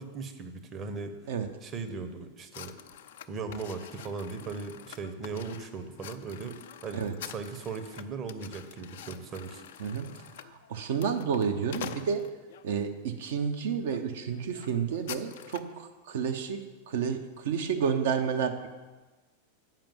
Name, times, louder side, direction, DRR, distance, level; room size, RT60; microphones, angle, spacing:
voice 1, 0.0-1.1 1.6-2.7 3.3-6.6 6.8-9.6, right 4 dB, 25° right, 7 dB, 0.9 m, -38 dB
sound 1, 2.5-12.7 13.3-13.5 13.9-14.0 14.3-15.8, left 10 dB, 55° left, 0.4 m, -46 dB
voice 2, 9.8-12.3 12.6-18.7, right 7 dB, 55° right, 6 dB, 0.8 m, -31 dB
7.5 x 5.2 x 7.2 m, 1.3 s
figure-of-eight pair, 90°, 0 cm